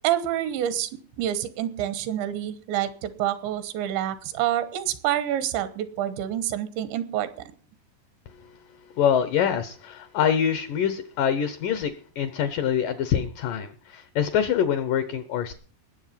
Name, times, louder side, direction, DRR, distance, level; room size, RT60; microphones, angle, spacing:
voice 1, 0.0-0.9 1.2-7.3, right 11 dB, 85° right, 12 dB, 3.3 m, -27 dB
voice 2, 9.0-15.5, left 8 dB, 75° left, 10 dB, 2.0 m, -25 dB
19.5 x 7.6 x 5.7 m, 0.42 s
omnidirectional pair, 5.1 m